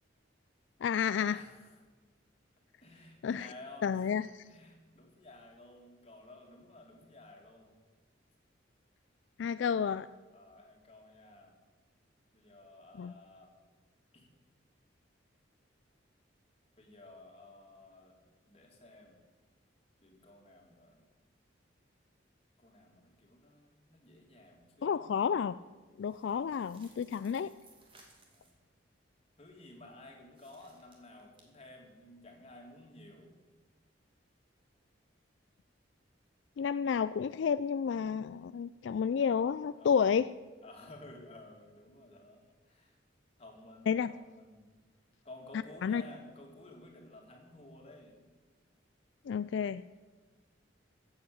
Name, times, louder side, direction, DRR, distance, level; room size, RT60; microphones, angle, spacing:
voice 1, 0.8-1.4 3.2-3.5 3.8-4.3 9.4-10.1 13.0-13.1 24.8-25.5 26.0-27.5 36.6-40.3 43.9-44.1 45.8-46.0 49.3-49.8, left 7 dB, 70° left, 14 dB, 0.3 m, -30 dB
voice 2, 1.3-1.8 2.8-7.8 9.6-9.8 10.3-11.5 12.3-13.5 14.1-14.3 16.8-18.2 18.5-19.2 20.0-21.0 22.6-25.1 28.2-28.5 29.4-33.3 39.8-40.1 40.6-43.0 43.4-44.7 45.2-48.3, left 2 dB, 30° left, 1 dB, 2.6 m, -54 dB
sound 1, 26.0-28.6 30.3-31.4, right 3 dB, 30° right, 2.5 m, -63 dB
15.5 x 8.0 x 7.0 m, 1.3 s
head